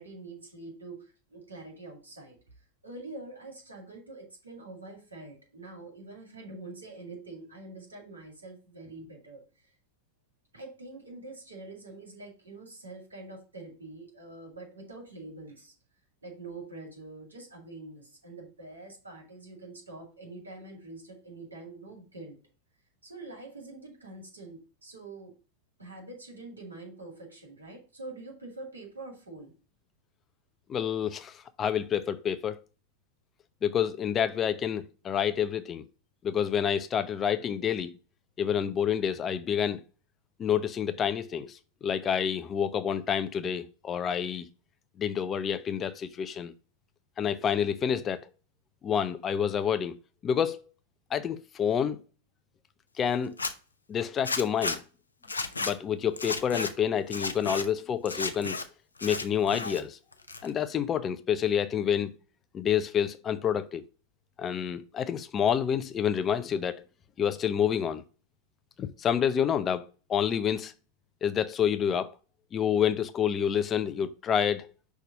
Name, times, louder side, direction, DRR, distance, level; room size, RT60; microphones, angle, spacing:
voice 1, 0.0-2.4 2.8-9.7 10.5-15.7 16.2-22.4 23.0-25.3 25.8-29.5, right 2 dB, 80° right, 2.1 m, -45 dB
voice 2, 30.7-32.6 33.6-35.8 36.2-37.9 38.4-39.8 40.4-44.5 45.0-46.5 47.2-48.3 48.8-50.0 50.2-50.6 51.1-52.0 53.0-53.3 53.9-54.8 55.6-58.6 59.0-60.0 60.4-62.1 62.5-63.8 64.4-66.8 67.2-68.0 68.8-69.8 70.1-70.7 71.2-72.1 72.5-74.7, left 8 dB, 25° left, 0.5 m, -28 dB
Zipper (clothing), 53.2-53.5 54.2-54.8 55.2-55.7 56.2-56.7 57.1-57.6 58.1-58.6 59.0-59.8 60.1-60.7, left 3 dB, 75° left, 0.6 m, -33 dB
5.7 x 3.6 x 5.4 m
figure-of-eight pair, 90°, 0 cm